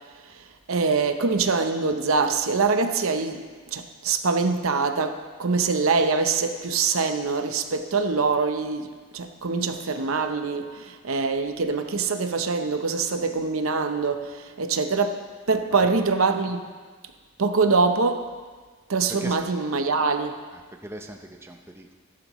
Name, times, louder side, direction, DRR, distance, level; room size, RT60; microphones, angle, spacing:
voice 1, 0.3-16.6 17.4-18.3 18.9-20.4, right 4 dB, 80° right, 7 dB, 0.8 m, -24 dB
voice 2, 20.5-21.9, right 1 dB, 10° right, 3 dB, 0.6 m, -40 dB
15.0 x 11.0 x 3.1 m, 1.5 s
head